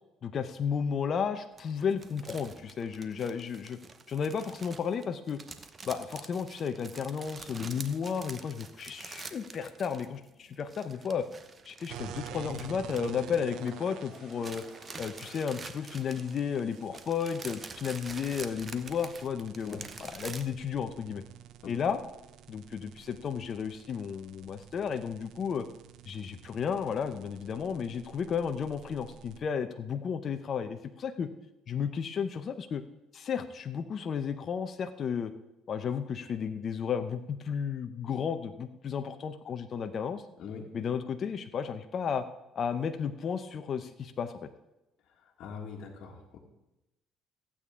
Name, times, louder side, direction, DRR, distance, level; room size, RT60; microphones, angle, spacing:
voice 1, 0.2-3.8 4.1-5.4 5.9-11.3 11.7-14.6 15.0-21.2 21.7-22.0 22.5-25.7 26.1-31.3 31.7-32.8 33.1-35.3 35.7-40.2 40.7-42.2 42.6-44.5, left 7 dB, 50° left, 8 dB, 0.7 m, -33 dB
sound 1, 1.6-10.3 10.5-13.9 14.1-20.4, right 4 dB, 35° right, 0.9 m, -47 dB
sound 2, 8.7-22.1, left 1 dB, 5° left, 5.0 m, -59 dB
sound 3, 11.9-29.4, right 11 dB, 75° right, 0.5 m, -49 dB
voice 2, 40.4-40.7 45.1-46.4, left 5 dB, 65° left, -3 dB, 1.8 m, -43 dB
15.0 x 8.5 x 3.7 m, 0.95 s
supercardioid pair, 90°, 0 cm